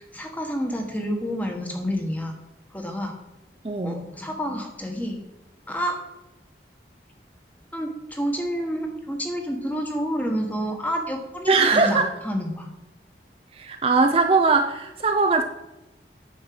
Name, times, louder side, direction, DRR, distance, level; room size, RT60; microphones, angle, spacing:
voice 1, 0.0-2.3 2.7-3.1 3.8-5.2 5.7-6.0 7.7-12.7, equal, 10° left, 2 dB, 1.3 m, -29 dB
voice 2, 3.6-4.1 11.5-12.1 13.5-15.4, right 4 dB, 30° right, 4 dB, 0.5 m, -20 dB
9.6 x 4.5 x 7.6 m, 0.97 s
head